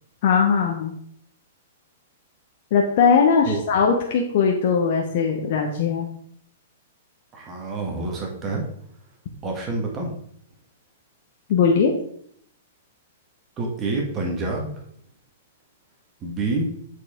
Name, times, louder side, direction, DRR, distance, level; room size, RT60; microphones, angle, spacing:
voice 1, 0.2-0.9 2.7-6.1 11.5-11.9, left 6 dB, 55° left, 0 dB, 1.0 m, -19 dB
voice 2, 7.3-8.6 9.4-10.1 13.6-14.7 16.2-16.7, right 3 dB, 25° right, 0 dB, 1.6 m, -27 dB
7.9 x 4.8 x 3.7 m, 0.67 s
hypercardioid pair, 140°, 0 cm